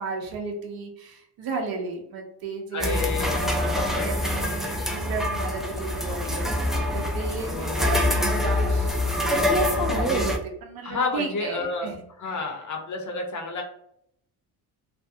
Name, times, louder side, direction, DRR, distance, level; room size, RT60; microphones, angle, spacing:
voice 1, 0.0-10.4 10.6-12.4, right 4 dB, 55° right, 2 dB, 0.7 m, -34 dB
voice 2, 2.7-4.8 7.4-8.3 10.8-11.9 12.2-13.6, left 3 dB, 45° left, 2 dB, 0.8 m, -31 dB
sound 1, 2.8-10.4, left 1 dB, ahead, 0.3 m, -25 dB
2.6 x 2.2 x 2.6 m, 0.74 s
supercardioid pair, 70°, 43 cm